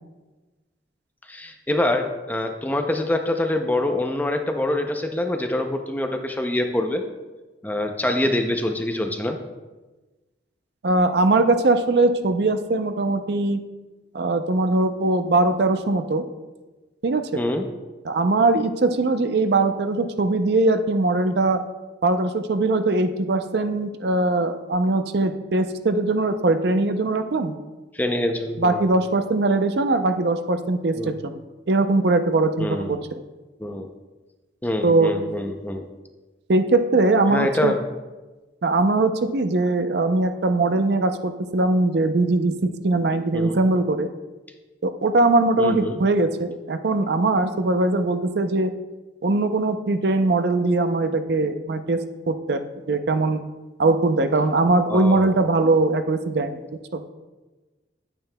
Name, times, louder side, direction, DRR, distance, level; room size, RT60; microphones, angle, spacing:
voice 1, 1.3-7.0 7.6-9.4 17.3-17.7 27.9-28.9 31.0-31.1 32.6-33.0 33.6-33.9 34.6-35.9 37.3-37.8 43.3-43.6 45.6-46.0 54.9-55.5, left 1 dB, 10° left, 5 dB, 0.5 m, -25 dB
voice 2, 10.8-13.6 14.1-16.2 17.0-17.4 18.0-21.6 22.0-27.5 28.6-31.4 31.7-33.0 34.8-35.1 36.5-37.7 38.6-42.6 42.8-44.1 44.8-48.7 49.2-52.6 52.9-53.4 53.8-56.6 56.9-57.0, right 2 dB, 60° right, 8 dB, 0.5 m, -21 dB
9.1 x 8.9 x 2.2 m, 1.2 s
head